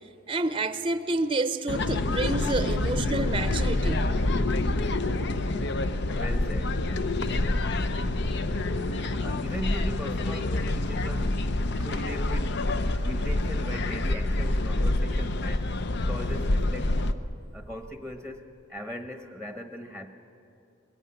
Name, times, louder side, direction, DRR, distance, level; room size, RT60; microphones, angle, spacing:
voice 1, 0.3-4.1 7.9-8.0 8.4-8.8, right 2 dB, 25° right, 0.7 m, -29 dB
sound 1, 1.7-17.1, left 2 dB, 60° left, 0.8 m, -27 dB
voice 2, 6.1-6.9 9.2-11.3 11.8-12.6 12.9-15.8 16.0-17.0 17.5-20.1, left 1 dB, 5° left, 1.1 m, -39 dB
21.5 x 16.5 x 9.7 m
head